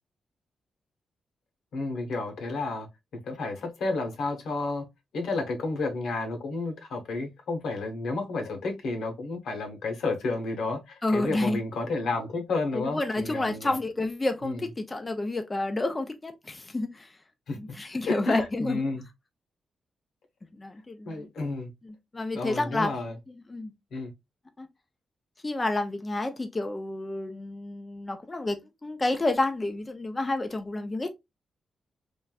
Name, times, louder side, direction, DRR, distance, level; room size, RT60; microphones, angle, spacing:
voice 1, 1.7-2.9 3.2-4.9 5.1-13.7 14.4-14.6 17.5-17.6 18.0-19.0 21.1-21.7 22.3-23.1 23.9-24.1, left 3 dB, 80° left, 1.0 m, -31 dB
voice 2, 11.0-11.6 12.7-17.2 17.5-18.8 20.5-21.3 21.8-22.9 23.3-23.7 24.6-24.7 25.4-31.1, left 2 dB, 20° left, 0.4 m, -30 dB
3.2 x 2.5 x 2.3 m
wide cardioid pair, 145°, 0 cm